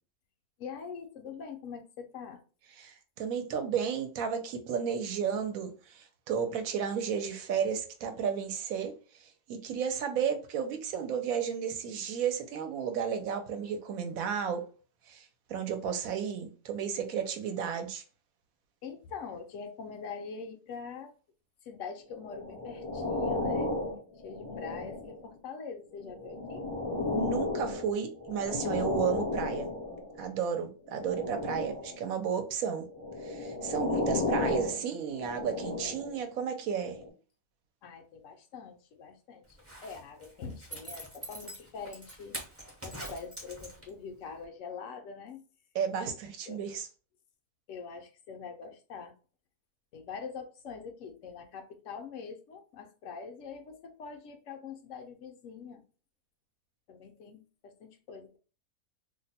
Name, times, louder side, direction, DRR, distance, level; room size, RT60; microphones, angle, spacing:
voice 1, 0.6-2.4 18.8-21.1 21.7-23.7 24.2-26.7 37.8-42.4 42.8-45.4 46.5-46.6 47.7-49.1 49.9-55.8 56.9-58.4, left 5 dB, 65° left, 0.8 m, -44 dB
voice 2, 2.8-8.9 9.2-14.6 15.1-15.2 15.5-18.0 27.1-29.6 30.2-32.8 33.2-37.0 45.7-46.9, right 7 dB, 70° right, 1.0 m, -33 dB
sound 1, 22.2-25.3 26.0-30.2 30.9-32.0 32.9-36.2 36.9-37.1, left 2 dB, 35° left, 0.4 m, -34 dB
Zipper (clothing), 39.5-44.1 44.4-44.5, right 1 dB, 15° right, 0.5 m, -44 dB
2.6 x 2.1 x 4.0 m
omnidirectional pair, 1.6 m